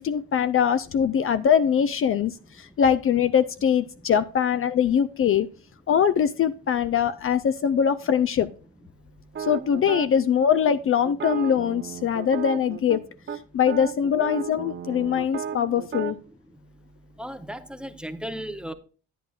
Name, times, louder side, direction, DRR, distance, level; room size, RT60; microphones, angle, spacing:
voice 1, 0.0-5.5 5.9-8.5 9.4-13.1 13.5-16.2, left 8 dB, 45° left, 0.4 m, -22 dB
sound 1, 9.4-10.1 11.1-13.0 13.3-13.4 13.7-16.2, right 7 dB, 40° right, 0.7 m, -34 dB
voice 2, 17.2-18.7, equal, 5° right, 0.7 m, -35 dB
10.5 x 9.0 x 2.3 m
cardioid pair, 90°, 30 cm